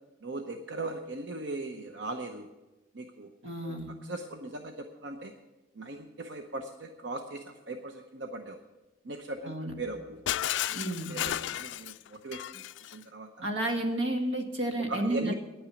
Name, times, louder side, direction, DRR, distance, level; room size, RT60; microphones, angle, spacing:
voice 1, 0.2-2.5 2.9-3.3 3.6-5.3 5.8-8.6 9.0-10.2 10.7-10.8 11.1-12.6 12.9-13.3 14.9-15.3, right 2 dB, 65° right, 5 dB, 0.8 m, -39 dB
voice 2, 3.4-3.9 9.4-9.7 10.7-11.2 13.4-15.3, right 1 dB, 90° right, 4 dB, 1.8 m, -31 dB
Shatter, 10.3-13.0, left 12 dB, 70° left, 0.3 m, -33 dB
10.0 x 8.8 x 8.4 m, 1.1 s
head